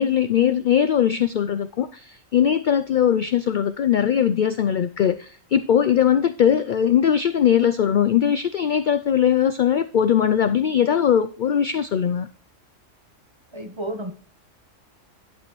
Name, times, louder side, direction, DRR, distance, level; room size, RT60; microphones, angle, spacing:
voice 1, 0.0-12.3, left 9 dB, 70° left, 0.4 m, -20 dB
voice 2, 13.5-14.1, right 1 dB, 20° right, 1.2 m, -31 dB
11.0 x 8.4 x 3.1 m
omnidirectional pair, 1.4 m